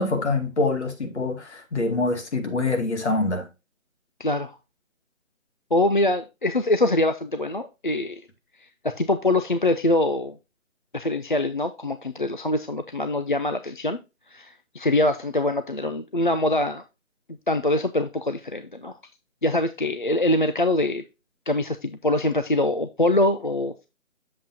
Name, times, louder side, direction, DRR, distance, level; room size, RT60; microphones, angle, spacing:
voice 1, 0.0-3.5, left 3 dB, 55° left, 2.4 m, -25 dB
voice 2, 4.2-4.6 5.7-8.2 8.6-10.4 10.9-14.0 14.3-16.8 17.5-18.9 19.4-21.0 21.5-23.9, left 1 dB, 40° left, 0.4 m, -24 dB
8.3 x 7.4 x 2.7 m
figure-of-eight pair, 155°, 40 cm